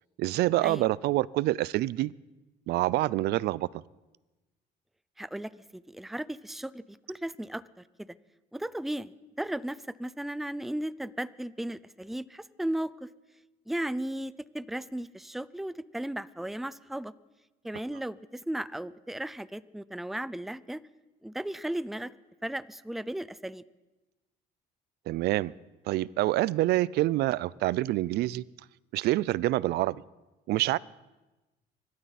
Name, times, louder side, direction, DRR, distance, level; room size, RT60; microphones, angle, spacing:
voice 1, 0.2-2.1 2.7-3.7 25.1-25.5 25.9-28.4 28.9-30.0 30.5-30.8, right 16 dB, 75° right, 0.4 m, -26 dB
voice 2, 5.2-7.8 8.5-13.1 13.7-17.1 17.6-20.8 21.2-22.1 22.4-23.6, right 1 dB, ahead, 0.5 m, -35 dB
24.5 x 13.0 x 4.1 m
cardioid pair, 110°, 17 cm